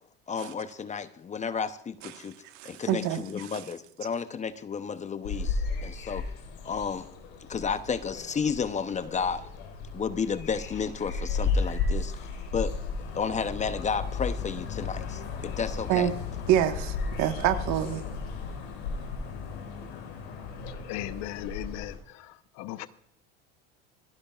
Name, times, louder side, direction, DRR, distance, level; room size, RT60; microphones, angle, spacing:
voice 1, 0.3-2.4 2.6-6.2 6.6-7.1 7.5-9.5 9.9-12.1 12.5-12.7 13.1-16.1, left 6 dB, 25° left, 0.7 m, -32 dB
voice 2, 2.5-3.2 15.9-16.1 16.5-18.0, right 11 dB, 65° right, 1.4 m, -26 dB
sound 1, 5.2-22.0, left 4 dB, 85° left, 4.6 m, -34 dB
voice 3, 20.7-22.9, left 15 dB, 60° left, 0.9 m, -38 dB
25.5 x 11.5 x 2.4 m
supercardioid pair, 105°, 31 cm